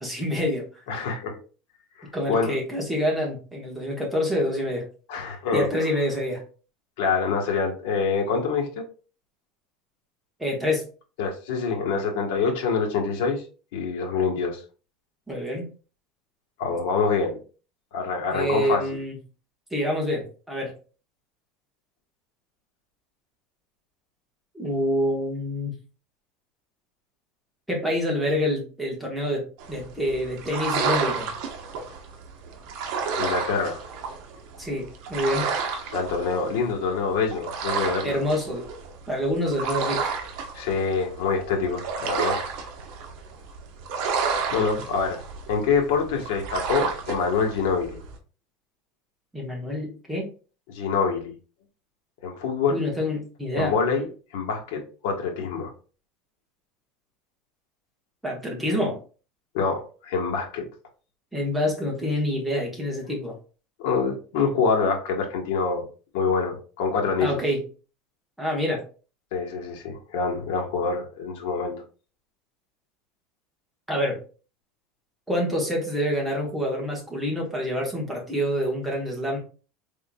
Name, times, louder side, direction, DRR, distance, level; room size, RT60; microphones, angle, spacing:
voice 1, 0.0-0.8 2.1-4.8 5.5-6.4 10.4-10.8 15.3-15.7 18.3-19.1 19.7-20.7 24.5-25.7 27.7-31.3 34.6-35.5 38.0-38.7 39.1-40.1 49.3-50.3 52.7-53.7 58.2-59.0 61.3-63.3 67.2-67.6 68.4-68.8 73.9-74.2 75.3-79.4, left 1 dB, ahead, -2 dB, 1.2 m, -27 dB
voice 2, 0.9-1.4 2.0-2.5 5.1-5.7 7.0-8.8 11.2-13.4 13.7-14.6 16.6-17.4 17.9-18.8 33.2-33.8 35.9-38.2 40.5-42.4 44.5-45.2 45.5-48.0 50.7-51.3 52.2-52.8 53.5-54.1 54.3-55.7 59.5-60.6 63.8-65.9 66.1-67.4 69.3-71.8, left 5 dB, 75° left, 2 dB, 1.2 m, -25 dB
sound 1, 29.6-48.1, right 5 dB, 60° right, 0.9 m, -31 dB
4.4 x 3.6 x 2.2 m, 0.36 s
cardioid pair, 170°, 0 cm